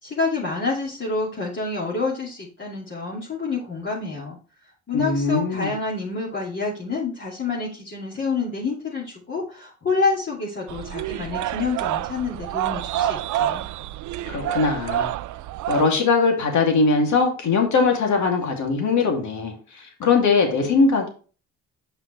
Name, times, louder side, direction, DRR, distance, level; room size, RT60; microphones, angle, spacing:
voice 1, 0.0-4.4 4.9-13.6, left 4 dB, 40° left, -5 dB, 2.6 m, -28 dB
voice 2, 4.9-5.7 14.3-15.1 15.7-21.1, left 4 dB, 70° left, 2 dB, 2.6 m, -21 dB
sound 1, 10.7-15.8, right 12 dB, 75° right, 0.5 m, -27 dB
7.9 x 5.7 x 3.2 m, 0.36 s
cardioid pair, 90°, 30 cm